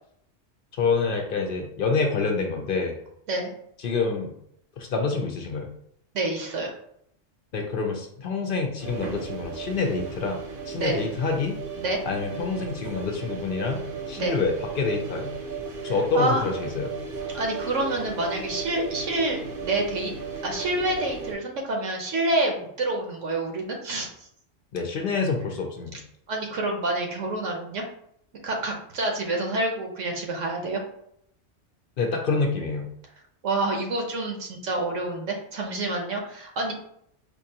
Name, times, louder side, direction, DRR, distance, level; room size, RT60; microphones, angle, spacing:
voice 1, 0.8-3.0 3.8-4.3 4.8-5.7 7.5-11.6 12.1-13.8 14.1-15.3 15.8-16.9 24.7-26.0 32.0-32.9, left 4 dB, 55° left, 3 dB, 0.7 m, -27 dB
voice 2, 6.1-6.7 10.8-11.0 11.8-12.0 14.2-14.4 16.1-16.5 17.3-20.1 20.4-24.3 26.3-27.8 28.4-30.8 33.4-36.7, right 2 dB, 75° right, 2 dB, 1.2 m, -28 dB
sound 1, 8.8-21.3, right 5 dB, 55° right, 0.8 m, -35 dB
4.5 x 2.5 x 2.8 m, 0.72 s
omnidirectional pair, 1.3 m